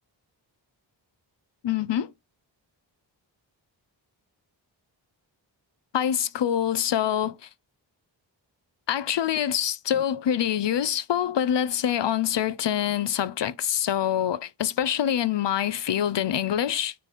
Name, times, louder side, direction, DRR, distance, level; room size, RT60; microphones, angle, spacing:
voice 1, 1.6-2.1 5.9-7.5 8.9-16.9, left 10 dB, 65° left, 0.7 m, -25 dB
9.9 x 3.3 x 4.2 m
wide cardioid pair, 70°, 45 cm